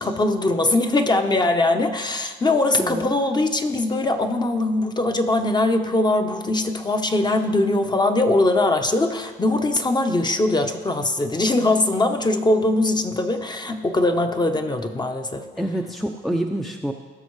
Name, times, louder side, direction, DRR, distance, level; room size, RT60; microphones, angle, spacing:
voice 1, 0.0-15.4, left 2 dB, 20° left, 6 dB, 0.9 m, -21 dB
voice 2, 2.8-3.1 15.6-16.9, right 1 dB, ahead, 3 dB, 0.6 m, -27 dB
18.0 x 6.4 x 3.2 m, 1.4 s
cardioid pair, 90°, 20 cm